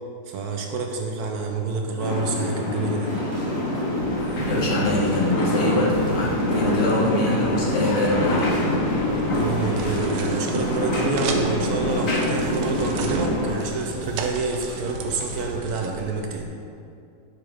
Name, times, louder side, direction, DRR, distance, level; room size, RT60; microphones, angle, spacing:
voice 1, 0.3-3.1 9.3-16.5, right 4 dB, 70° right, 2 dB, 1.1 m, -27 dB
sound 1, 2.0-13.6, left 1 dB, 50° left, 1.4 m, -25 dB
sound 2, 3.0-15.6, equal, 15° right, 1.0 m, -38 dB
voice 2, 4.5-8.5, left 1 dB, 75° left, -4 dB, 1.9 m, -24 dB
sound 3, 8.4-16.5, right 4 dB, 90° right, 1.2 m, -37 dB
7.6 x 5.3 x 3.4 m, 2.4 s
omnidirectional pair, 1.9 m